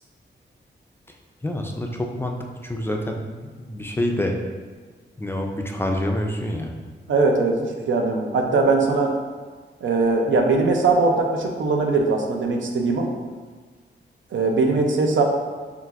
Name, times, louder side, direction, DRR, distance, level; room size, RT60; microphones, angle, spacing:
voice 1, 1.4-3.2 3.6-4.4 5.2-6.7, left 1 dB, 10° left, 1 dB, 0.3 m, -27 dB
voice 2, 7.1-9.1 9.8-13.1 14.3-15.2, right 3 dB, 85° right, 2 dB, 0.6 m, -20 dB
5.8 x 2.5 x 2.4 m, 1.5 s
wide cardioid pair, 135°, 19 cm